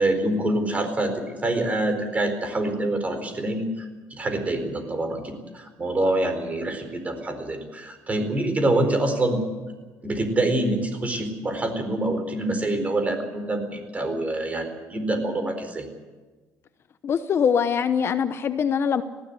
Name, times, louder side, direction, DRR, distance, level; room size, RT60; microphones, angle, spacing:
voice 1, 0.0-9.4 10.0-15.9, right 1 dB, 25° right, 7 dB, 4.4 m, -26 dB
voice 2, 17.0-19.0, left 7 dB, 40° left, 11 dB, 0.9 m, -23 dB
19.5 x 15.5 x 9.7 m, 1.3 s
cardioid pair, 125°, 6 cm